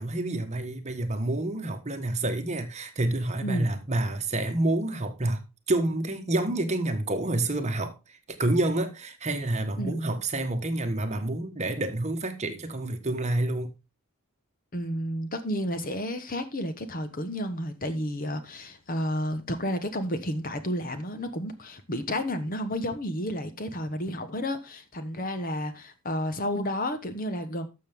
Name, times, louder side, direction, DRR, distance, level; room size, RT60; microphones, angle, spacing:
voice 1, 0.0-5.4 5.7-13.7, right 2 dB, 30° right, 1.3 m, -28 dB
voice 2, 14.7-27.7, equal, 40° left, 1.2 m, -31 dB
12.5 x 6.8 x 3.6 m
head